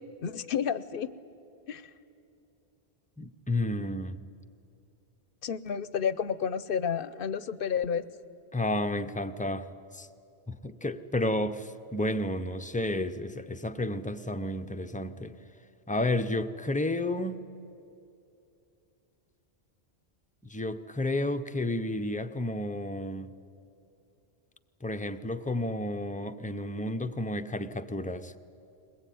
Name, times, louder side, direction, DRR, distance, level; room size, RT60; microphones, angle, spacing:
voice 1, 0.2-1.1 1.7-1.8 5.4-8.0, left 7 dB, 60° left, 16 dB, 0.8 m, -30 dB
voice 2, 3.2-4.2 8.5-10.1 10.5-15.4 15.9-17.5 20.4-23.3 24.8-28.4, left 1 dB, 10° left, 9 dB, 0.6 m, -31 dB
22.0 x 20.5 x 9.2 m, 2.7 s
omnidirectional pair, 1.1 m